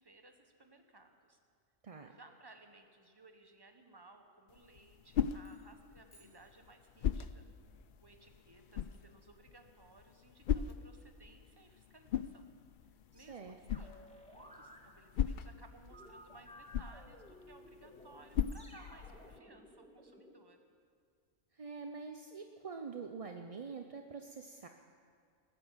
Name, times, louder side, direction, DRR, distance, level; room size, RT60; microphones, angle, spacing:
voice 1, 0.0-1.4 2.1-7.5 8.0-12.5 13.1-14.0 14.3-20.6, right 2 dB, 20° right, 5 dB, 1.2 m, -60 dB
sound 1, 4.5-19.4, left 9 dB, 60° left, 0.5 m, -41 dB
sound 2, 5.4-7.3, right 1 dB, 40° left, 2.3 m, -69 dB
voice 2, 13.2-13.6 21.5-24.7, right 5 dB, 40° right, 4 dB, 0.5 m, -45 dB
sound 3, 13.7-14.8 15.9-20.3, equal, 5° left, 1.6 m, -56 dB
20.0 x 9.2 x 7.4 m, 2.3 s
omnidirectional pair, 1.3 m